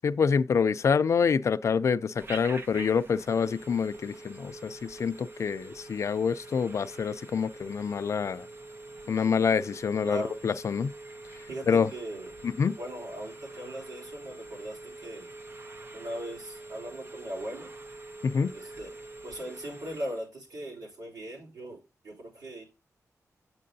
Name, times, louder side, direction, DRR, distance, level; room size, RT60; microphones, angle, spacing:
voice 1, 0.0-8.5 9.1-10.9 11.7-11.9 12.4-12.8 18.2-18.5, left 6 dB, 55° left, 0.4 m, -26 dB
Telephone, 2.2-20.3, right 2 dB, 40° right, 0.6 m, -45 dB
voice 2, 10.0-10.4 11.5-12.3 12.8-15.4 15.9-17.7 18.5-18.9 19.2-22.6, right 1 dB, 90° right, 3.9 m, -39 dB
8.6 x 7.5 x 2.7 m
wide cardioid pair, 170°, 6 cm